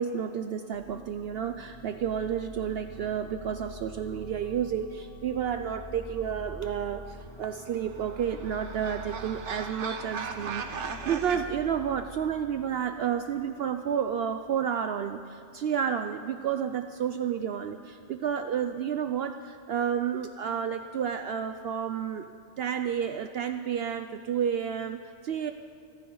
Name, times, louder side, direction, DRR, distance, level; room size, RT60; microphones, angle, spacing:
voice 1, 0.0-22.3 22.6-25.5, right 8 dB, 65° right, 8 dB, 0.7 m, -31 dB
sound 1, 0.7-13.2, equal, 5° left, 3.1 m, -46 dB
sound 2, 7.5-11.4, right 5 dB, 85° right, 1.3 m, -38 dB
24.5 x 14.0 x 3.9 m, 2.8 s
omnidirectional pair, 1.2 m